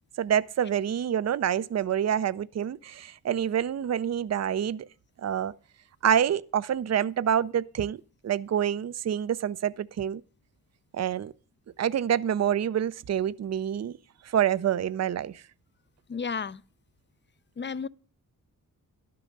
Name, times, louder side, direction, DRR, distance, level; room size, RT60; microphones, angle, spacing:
voice 1, 0.2-4.9 5.2-5.5 6.0-10.2 10.9-11.3 11.8-13.9 14.3-15.3, right 9 dB, 50° right, 0.5 m, -27 dB
voice 2, 16.1-16.6 17.6-17.9, left 5 dB, 30° left, 0.5 m, -32 dB
12.0 x 6.7 x 5.2 m
cardioid pair, 65°, 35 cm